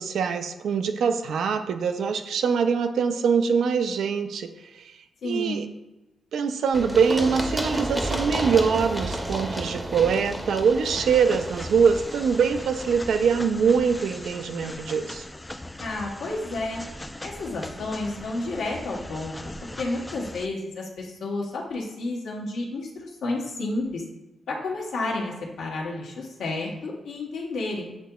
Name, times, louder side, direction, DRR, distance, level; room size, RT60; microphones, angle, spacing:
voice 1, 0.0-4.9 5.2-5.7 6.3-15.2, right 6 dB, 80° right, 8 dB, 0.4 m, -23 dB
voice 2, 5.2-5.6 15.8-16.8 17.2-24.0 24.5-28.0, left 2 dB, 85° left, -2 dB, 1.0 m, -31 dB
Run, 6.7-14.4, right 1 dB, 20° right, 0.7 m, -32 dB
sound 1, 11.0-20.5, left 1 dB, 15° left, 0.3 m, -40 dB
8.0 x 2.8 x 2.3 m, 1.0 s
cardioid pair, 60°, 0 cm